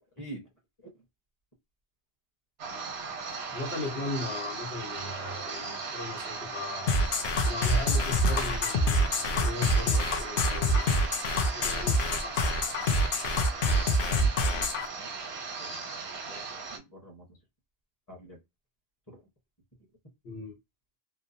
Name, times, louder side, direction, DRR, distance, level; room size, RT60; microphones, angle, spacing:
sound 1, 2.6-16.8, right 4 dB, 85° right, 1.0 m, -38 dB
voice 1, 3.5-6.9 7.4-10.9 11.5-12.7 20.2-20.6, left 3 dB, 80° left, 1.2 m, -38 dB
sound 2, 6.9-14.9, left 1 dB, 65° left, 0.7 m, -26 dB
voice 2, 14.1-14.6 15.0-15.1 15.6-15.8 16.3-17.2 18.1-18.4 19.1-19.2, right 1 dB, 20° left, 1.0 m, -46 dB
2.9 x 2.0 x 2.5 m
omnidirectional pair, 1.0 m